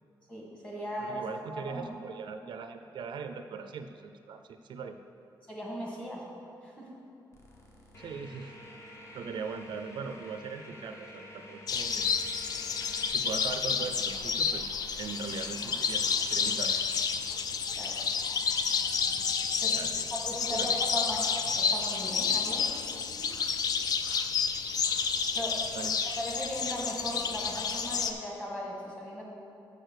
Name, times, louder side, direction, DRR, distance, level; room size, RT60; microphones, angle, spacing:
voice 1, 0.3-1.2 1.5-1.9 5.5-6.2 6.6-6.9 17.7-17.9 19.6-19.8 20.1-21.2 21.5-22.7 25.3-25.6 26.2-29.2, equal, 15° left, -4 dB, 1.8 m, -37 dB
voice 2, 1.0-5.0 8.0-8.5 9.1-12.1 13.1-14.7 15.0-16.8 19.7-20.1 20.5-20.7 25.7-25.9, right 5 dB, 70° right, 7 dB, 0.4 m, -40 dB
sound 1, 7.3-23.4, left 1 dB, 35° left, 1.1 m, -51 dB
sound 2, 11.7-28.1, left 6 dB, 55° left, 0.4 m, -30 dB
7.0 x 6.4 x 6.4 m, 2.8 s
wide cardioid pair, 175°, 8 cm